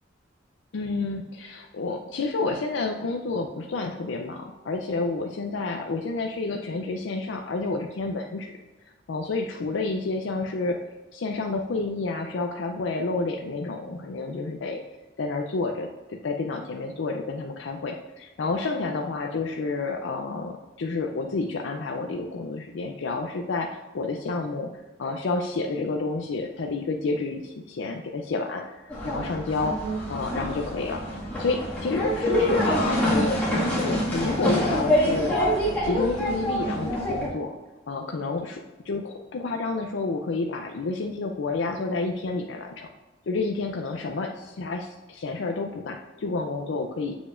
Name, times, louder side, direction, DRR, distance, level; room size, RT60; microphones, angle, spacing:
voice 1, 0.7-8.5 8.8-10.8 11.1-14.8 15.2-24.7 25.0-29.8 30.1-35.4 35.8-37.5 37.9-42.9 43.3-47.2, left 3 dB, 80° left, 3 dB, 0.5 m, -30 dB
sound 1, 28.9-37.3, equal, 10° left, 1.8 m, -26 dB
7.1 x 6.8 x 2.5 m, 1.2 s
head